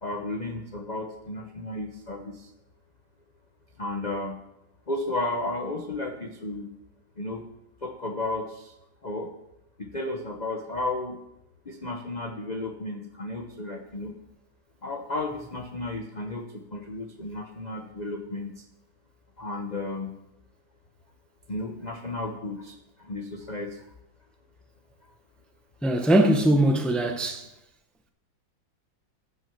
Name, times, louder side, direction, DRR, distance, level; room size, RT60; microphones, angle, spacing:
voice 1, 0.0-2.5 3.8-4.4 4.9-6.7 7.2-7.4 7.8-8.7 9.0-9.3 9.8-11.2 11.6-14.2 14.8-18.6 19.4-20.1 21.5-23.9, left 2 dB, 40° left, 0.6 m, -33 dB
voice 2, 25.8-27.5, right 1 dB, ahead, 0.6 m, -21 dB
15.0 x 6.3 x 7.0 m
omnidirectional pair, 2.2 m